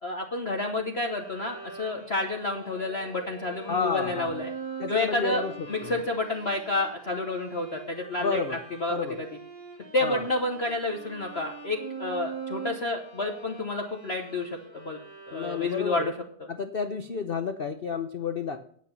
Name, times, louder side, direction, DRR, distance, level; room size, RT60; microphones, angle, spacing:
voice 1, 0.0-4.5 4.9-5.4 5.7-9.3 9.9-15.0 15.3-16.1, left 2 dB, 40° left, 2 dB, 1.1 m, -30 dB
Bowed string instrument, 0.9-16.2, right 5 dB, 90° right, 5.2 m, -43 dB
voice 2, 3.7-4.3 4.8-5.5 5.8-6.0 8.2-8.6 8.9-9.2 10.0-10.3 15.3-16.1 16.6-18.6, left 5 dB, 80° left, 7 dB, 0.5 m, -30 dB
9.8 x 8.4 x 5.7 m, 0.63 s
omnidirectional pair, 2.1 m